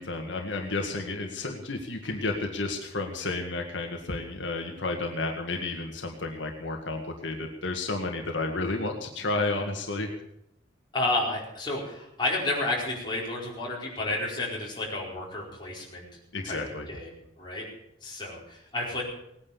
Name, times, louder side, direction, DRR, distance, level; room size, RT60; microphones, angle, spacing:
voice 1, 0.0-10.1 16.3-16.9, left 2 dB, 80° left, 3 dB, 1.8 m, -31 dB
voice 2, 10.9-16.1 16.4-16.6 16.9-17.1 17.4-17.6 18.0-19.0, left 2 dB, 25° left, -4 dB, 4.8 m, -31 dB
18.5 x 9.8 x 7.2 m, 0.78 s
head